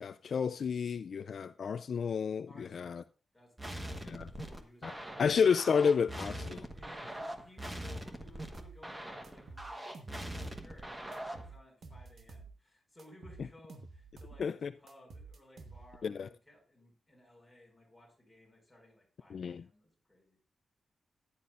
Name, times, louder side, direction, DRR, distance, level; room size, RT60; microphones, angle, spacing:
voice 1, 0.0-3.0 4.0-4.3 4.8-6.6 14.4-14.7 16.0-16.3 19.3-19.6, left 6 dB, 55° left, 0.4 m, -31 dB
voice 2, 2.5-3.0 3.3-3.9 4.2-5.2 6.3-20.4, left 1 dB, 5° left, 5.3 m, -59 dB
sound 1, 3.6-11.5, right 1 dB, 15° right, 1.3 m, -42 dB
sound 2, 8.5-8.8 9.2-10.7 11.1-12.5 13.0-14.4 14.9-16.1, right 4 dB, 60° right, 1.3 m, -51 dB
14.5 x 10.0 x 2.5 m
wide cardioid pair, 155°, 0 cm